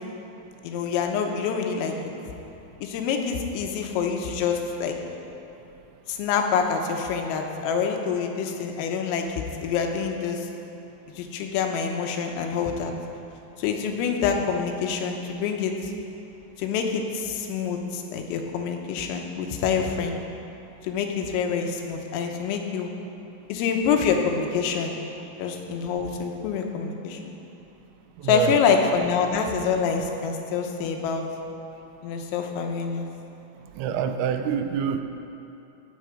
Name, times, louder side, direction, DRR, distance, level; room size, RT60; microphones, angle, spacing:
voice 1, 0.6-1.9 2.8-5.0 6.1-10.5 11.2-12.9 13.6-15.9 16.6-20.2 20.8-22.9 23.5-25.0 25.4-27.3 28.2-31.2 32.0-33.1, left 6 dB, 90° left, 3 dB, 3.7 m, -26 dB
voice 2, 28.2-28.6 33.8-35.0, right 8 dB, 90° right, 8 dB, 3.3 m, -26 dB
18.0 x 7.6 x 5.0 m, 2.8 s
omnidirectional pair, 5.9 m